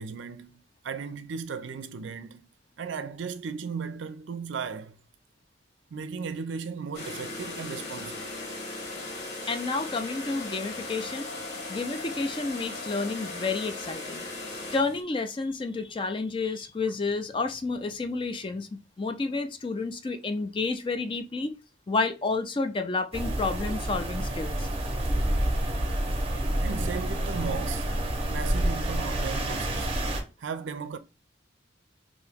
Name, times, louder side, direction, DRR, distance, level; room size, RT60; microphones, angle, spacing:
voice 1, 0.0-2.5 2.8-5.0 5.9-8.3 26.6-27.9 28.3-29.9 30.4-31.0, right 5 dB, 75° right, 0.4 m, -36 dB
sound 1, 6.9-15.0, left 2 dB, 55° left, 1.3 m, -37 dB
voice 2, 9.5-11.3 11.7-14.2 14.7-18.7 19.0-21.5 21.9-24.7, left 3 dB, 25° left, 0.3 m, -30 dB
sound 2, 23.1-30.2, right 1 dB, 30° right, 0.6 m, -28 dB
2.9 x 2.6 x 3.4 m
head